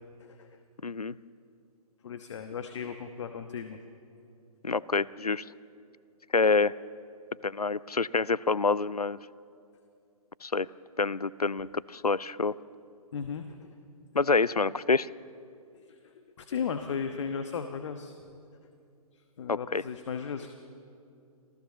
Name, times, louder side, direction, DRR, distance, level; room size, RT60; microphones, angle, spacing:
voice 1, 0.8-1.1 4.6-5.4 6.3-6.7 7.4-9.2 10.4-10.7 11.0-12.5 14.1-15.1 19.5-19.8, left 4 dB, 90° left, 21 dB, 0.6 m, -27 dB
voice 2, 2.0-3.8 13.1-13.7 15.7-18.1 19.4-20.5, left 6 dB, 50° left, 7 dB, 1.2 m, -36 dB
27.0 x 16.0 x 7.0 m, 2.5 s
figure-of-eight pair, 125°, 19 cm